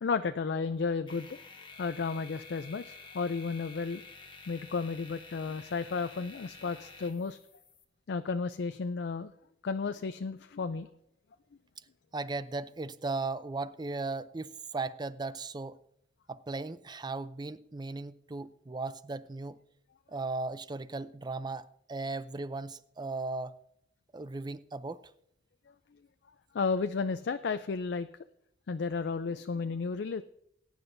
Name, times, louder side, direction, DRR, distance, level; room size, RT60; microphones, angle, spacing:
voice 1, 0.0-1.4 1.8-4.0 4.5-7.4 8.1-9.3 9.6-10.9 26.5-28.1 28.7-30.2, left 4 dB, 70° left, 0.4 m, -33 dB
sound 1, 1.1-7.8, left 4 dB, 25° left, 1.1 m, -51 dB
voice 2, 12.1-15.8 16.3-19.6 20.1-23.6 24.1-25.0, right 3 dB, 25° right, 0.5 m, -37 dB
20.5 x 9.5 x 2.6 m
head